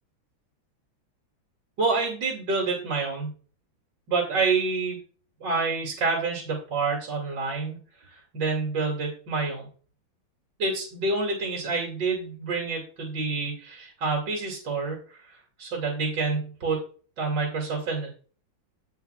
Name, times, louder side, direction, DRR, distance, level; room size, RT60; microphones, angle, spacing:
voice 1, 1.8-3.3 4.1-5.0 5.4-7.8 8.1-9.7 10.6-16.8 17.2-18.1, right 4 dB, 60° right, -1 dB, 3.0 m, -28 dB
14.5 x 5.7 x 2.3 m, 0.39 s
omnidirectional pair, 2.3 m